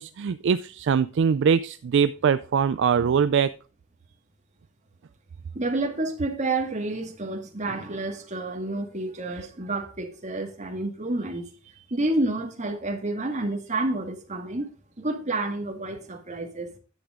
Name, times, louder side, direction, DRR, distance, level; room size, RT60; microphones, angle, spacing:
voice 1, 0.0-3.5, right 6 dB, 60° right, 0.4 m, -22 dB
voice 2, 5.5-11.5 11.9-14.7 15.0-16.7, right 2 dB, 35° right, 1.9 m, -29 dB
10.0 x 7.9 x 3.6 m
head